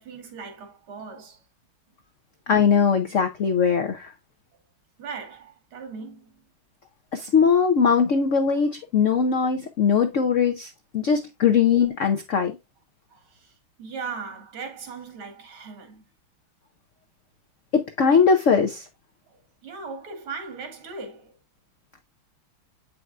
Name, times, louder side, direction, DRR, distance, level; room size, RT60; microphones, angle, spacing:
voice 1, 0.0-1.4 3.9-4.0 5.0-6.4 13.1-13.5 13.8-16.0 19.3-21.3, right 5 dB, 85° right, 2.7 m, -38 dB
voice 2, 2.5-4.1 7.1-12.6 17.7-18.9, left 6 dB, 90° left, 0.6 m, -20 dB
7.9 x 5.8 x 2.4 m
omnidirectional pair, 2.3 m